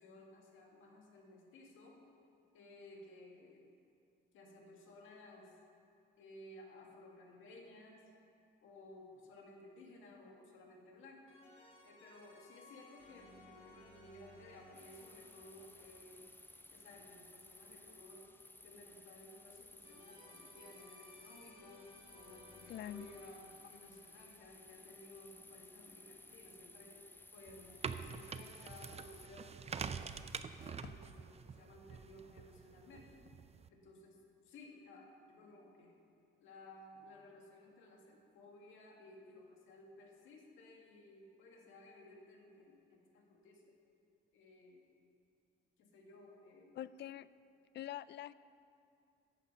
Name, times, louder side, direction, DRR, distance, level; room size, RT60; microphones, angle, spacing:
voice 1, 0.0-2.0 2.5-3.7 4.3-5.5 6.2-8.1 8.6-16.3 16.7-18.3 18.6-21.8 22.1-27.0 27.3-33.2 33.7-36.0 36.4-43.7 44.3-44.9 45.8-46.8, left 2 dB, 90° left, 0 dB, 2.1 m, -57 dB
sound 1, 8.8-8.9 11.3-17.3 19.8-24.9, left 1 dB, 25° left, 3.0 m, -62 dB
sound 2, 14.7-29.3, left 2 dB, 10° left, 0.6 m, -58 dB
voice 2, 22.7-23.1 30.8-30.9 46.7-47.3 47.7-48.3, left 12 dB, 60° left, 17 dB, 0.4 m, -45 dB
sound 3, 27.5-33.7, right 6 dB, 30° right, 0.5 m, -46 dB
15.0 x 8.3 x 5.6 m, 2.5 s
cardioid pair, 90°, 20 cm